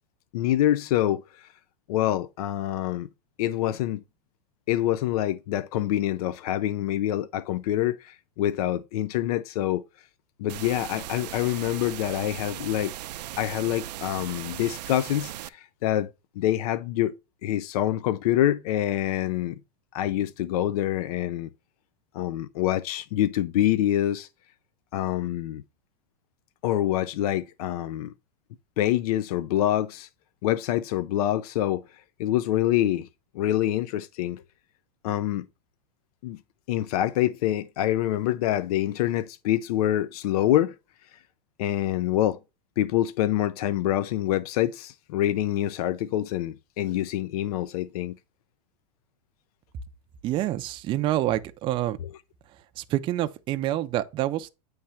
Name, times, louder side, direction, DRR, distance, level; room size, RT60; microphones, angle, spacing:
voice 1, 0.3-1.2 1.9-3.1 3.4-4.0 4.7-9.8 10.4-12.9 13.4-16.1 16.4-17.1 17.4-19.6 19.9-21.5 22.1-24.3 24.9-25.6 26.6-28.1 28.8-30.1 30.4-31.8 32.2-33.1 33.3-34.4 35.0-35.5 36.2-36.4 36.7-40.7 41.6-42.4 42.8-48.2 52.0-52.1, left 13 dB, 65° left, 0.5 m, -26 dB
sound 1, 10.5-15.5, right 14 dB, 85° right, 0.5 m, -38 dB
voice 2, 50.2-52.0 52.8-54.5, right 14 dB, 25° right, 0.4 m, -27 dB
8.8 x 3.2 x 5.6 m
supercardioid pair, 145°, 21 cm